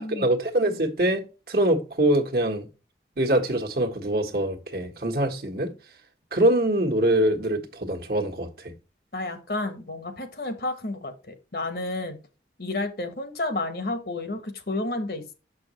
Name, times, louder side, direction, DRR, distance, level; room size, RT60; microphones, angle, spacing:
voice 1, 0.0-2.7 3.2-5.7 6.3-8.7, right 1 dB, 60° right, 1.4 m, -24 dB
voice 2, 9.1-12.2 12.6-15.3, left 2 dB, 60° left, 1.2 m, -31 dB
7.1 x 6.1 x 3.1 m
head